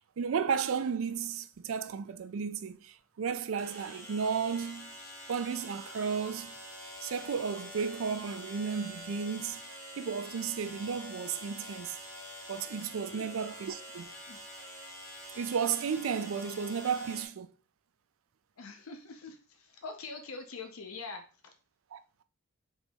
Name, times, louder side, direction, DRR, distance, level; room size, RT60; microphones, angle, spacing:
voice 1, 0.2-4.9 5.3-6.5 7.0-9.6 10.0-12.0 12.5-14.1 15.3-17.5 21.9-22.0, right 6 dB, 70° right, 0.4 m, -33 dB
sound 1, 1.5-1.6 3.6-17.3, left 1 dB, 15° left, 1.4 m, -46 dB
voice 2, 18.6-21.2, left 4 dB, 85° left, 0.7 m, -44 dB
4.1 x 3.0 x 3.4 m
head